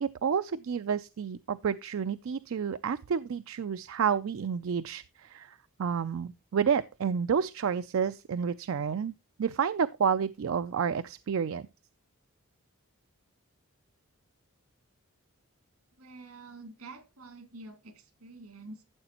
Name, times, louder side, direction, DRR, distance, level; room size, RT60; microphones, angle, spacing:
voice 1, 0.0-5.5 5.8-9.1 9.4-11.7, right 7 dB, 65° right, 0.4 m, -30 dB
voice 2, 16.0-18.8, right 2 dB, 80° right, 2.2 m, -47 dB
13.0 x 7.6 x 2.9 m
head